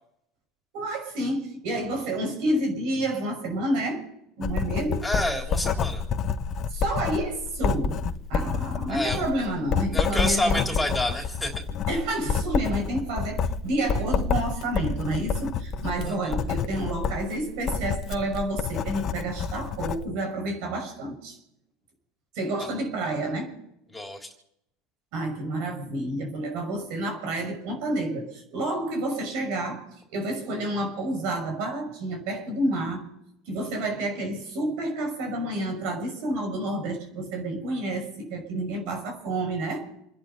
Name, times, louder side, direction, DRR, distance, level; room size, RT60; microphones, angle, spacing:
voice 1, 0.7-4.0 4.4-5.1 6.7-8.0 8.3-10.6 11.9-21.4 22.3-23.6 25.1-33.1 33.5-39.9, right 1 dB, 65° right, 4 dB, 6.2 m, -29 dB
Writing, 4.4-20.0, left 5 dB, 40° left, 1.2 m, -28 dB
voice 2, 5.0-6.0 8.9-9.2 9.9-11.5 16.1-16.4 23.9-24.3, left 1 dB, 5° left, 2 dB, 3.6 m, -28 dB
29.0 x 10.5 x 4.2 m, 0.79 s
supercardioid pair, 120°, 0 cm